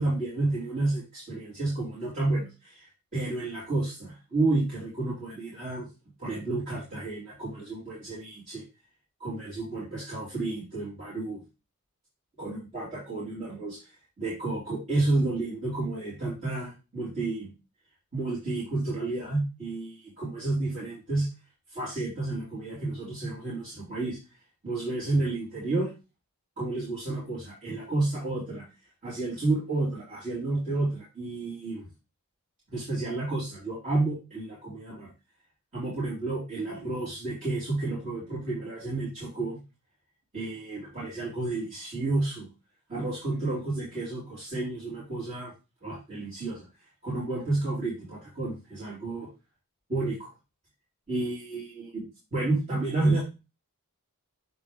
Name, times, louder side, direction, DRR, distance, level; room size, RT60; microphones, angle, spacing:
voice 1, 0.0-5.9 6.2-8.6 9.2-11.4 12.4-13.9 14.2-17.5 18.1-21.3 21.7-24.2 24.6-25.9 26.6-28.6 29.0-31.9 32.7-35.1 35.7-39.6 40.3-42.5 42.9-45.5 45.8-46.6 47.0-49.3 49.9-50.3 51.1-52.0 52.3-53.2, right 2 dB, 35° right, -9 dB, 3.1 m, -31 dB
7.0 x 4.0 x 3.6 m, 0.29 s
head